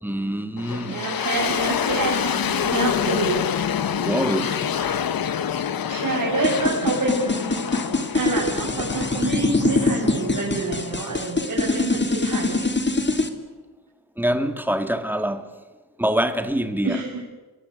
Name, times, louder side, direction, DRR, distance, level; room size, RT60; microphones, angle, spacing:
voice 1, 0.0-1.0 4.0-4.6 14.2-15.5 16.0-17.0, right 1 dB, 5° right, 2.8 m, -24 dB
sound 1, 0.6-11.5, left 8 dB, 90° left, 1.3 m, -27 dB
voice 2, 0.9-3.4 4.4-5.0 5.5-5.6 5.8-7.7 8.1-12.7 16.8-17.2, right 2 dB, 70° right, 7.3 m, -27 dB
flange fill, 6.4-13.3, left 2 dB, 30° left, 3.2 m, -23 dB
28.5 x 23.0 x 8.6 m
cardioid pair, 70°, 34 cm